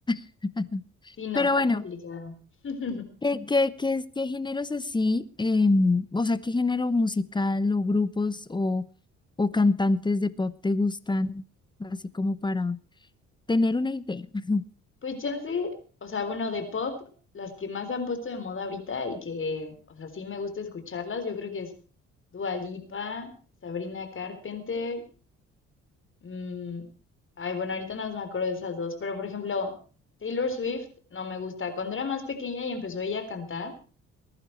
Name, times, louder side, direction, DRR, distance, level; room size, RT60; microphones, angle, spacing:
voice 1, 0.6-1.8 3.2-8.8 9.4-11.4 11.8-12.8 13.5-14.6, left 3 dB, 15° left, 16 dB, 0.9 m, -25 dB
voice 2, 1.2-2.3 2.6-3.0 15.0-15.8 16.0-17.0 17.3-21.7 22.3-23.3 23.6-25.0 26.2-26.9 27.4-29.8 30.2-30.9 31.1-33.7, left 4 dB, 40° left, 8 dB, 3.9 m, -33 dB
20.0 x 11.0 x 4.5 m, 0.36 s
cardioid pair, 90°, 30 cm